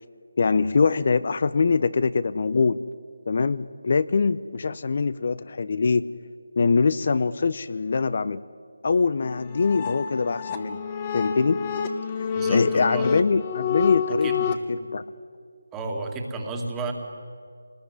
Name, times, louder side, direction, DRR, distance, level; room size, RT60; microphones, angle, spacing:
voice 1, 0.4-2.8 3.3-6.1 6.6-8.4 8.8-10.8 11.1-11.6 12.2-14.3 14.7-15.0, left 4 dB, 45° left, 15 dB, 0.7 m, -23 dB
sound 1, 9.2-14.6, left 7 dB, 25° left, 1.4 m, -28 dB
voice 2, 12.3-13.1 14.2-14.5 15.7-16.9, right 3 dB, 10° right, 2 dB, 2.3 m, -31 dB
26.5 x 20.0 x 9.6 m, 2.3 s
figure-of-eight pair, 160°, 0 cm